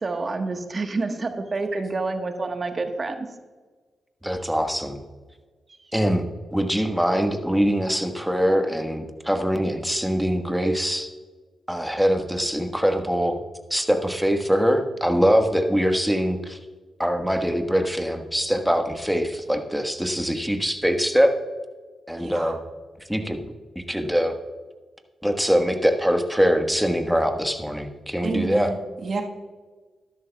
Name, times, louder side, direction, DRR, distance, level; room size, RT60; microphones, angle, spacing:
voice 1, 0.0-3.3, right 3 dB, 45° right, 6 dB, 1.3 m, -28 dB
voice 2, 4.2-5.0 5.9-11.1 11.7-13.4 13.7-16.6 17.0-21.4 22.1-22.6 23.1-23.4 23.7-24.4 25.2-28.8, equal, 5° right, 5 dB, 1.4 m, -23 dB
voice 3, 22.2-22.5 28.2-29.2, right 4 dB, 60° right, 2 dB, 1.4 m, -29 dB
13.0 x 11.0 x 2.3 m, 1.4 s
supercardioid pair, 50°, 0 cm